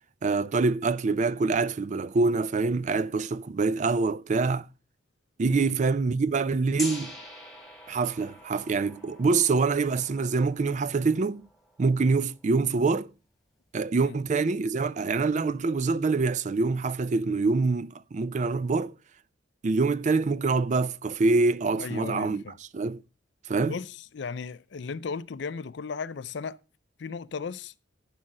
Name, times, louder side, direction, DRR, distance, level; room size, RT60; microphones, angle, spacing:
voice 1, 0.2-4.7 5.4-7.1 7.9-11.5 11.8-13.1 13.7-18.9 19.6-22.4 22.7-23.0 23.5-23.8, right 4 dB, 40° right, 0.4 m, -25 dB
Gong, 6.8-12.7, left 1 dB, ahead, 2.2 m, -44 dB
voice 2, 21.8-22.6 23.6-26.6 27.0-27.7, left 5 dB, 65° left, 0.5 m, -36 dB
11.5 x 4.9 x 6.4 m
head